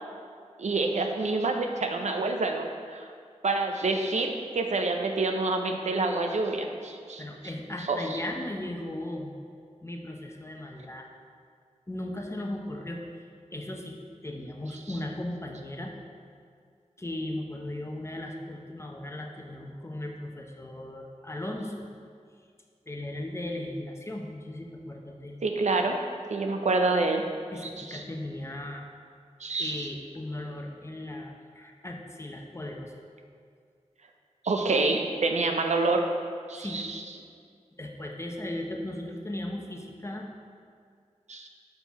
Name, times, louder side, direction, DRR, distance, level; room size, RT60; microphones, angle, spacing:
voice 1, 0.6-3.1 3.4-7.2 7.9-8.2 25.4-26.0 26.3-27.2 27.9-28.0 29.4-29.9 34.4-36.0 36.5-37.0 41.3-41.5, right 3 dB, 70° right, 4 dB, 0.5 m, -27 dB
voice 2, 7.2-9.3 9.8-11.1 11.9-13.0 13.5-15.9 17.0-21.9 22.9-25.4 27.5-28.8 29.6-32.9 36.6-36.8 37.8-40.3, left 1 dB, 20° left, 1 dB, 0.7 m, -37 dB
5.5 x 4.3 x 4.6 m, 2.1 s
wide cardioid pair, 45°, 12 cm